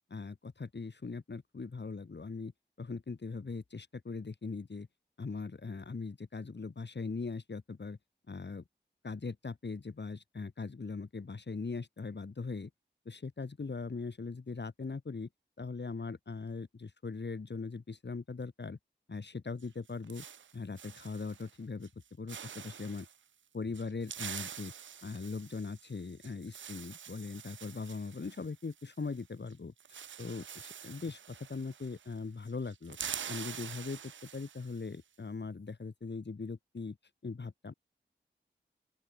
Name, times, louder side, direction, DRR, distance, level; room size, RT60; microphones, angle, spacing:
voice 1, 0.1-2.5 2.8-4.9 5.2-8.0 8.3-8.6 9.0-12.7 13.0-15.3 15.6-18.8 19.1-20.2 20.5-21.9 22.2-23.0 23.5-24.7 25.0-33.0 33.3-37.0 37.2-37.7, left 4 dB, 65° left, 2.9 m, -40 dB
sound 1, 19.6-21.5 21.8-22.0 22.3-23.2 23.7-29.2 29.5-29.6 29.8-32.2 32.4-34.9, right 8 dB, 75° right, 0.5 m, -46 dB
open air
cardioid pair, 40°, 19 cm